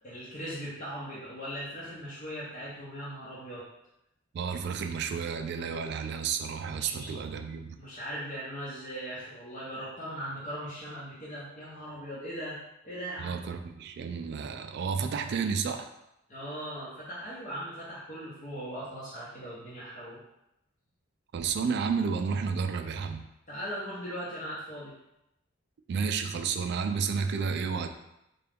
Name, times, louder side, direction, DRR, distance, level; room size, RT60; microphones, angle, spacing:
voice 1, 0.0-3.6 6.7-7.2 7.8-12.6 12.8-13.3 16.3-20.2 23.5-25.0, equal, 40° left, -8 dB, 0.8 m, -39 dB
voice 2, 4.3-7.8 13.2-15.9 21.3-23.3 25.9-27.9, right 6 dB, 55° right, 7 dB, 0.3 m, -31 dB
3.7 x 2.2 x 3.4 m, 0.84 s
head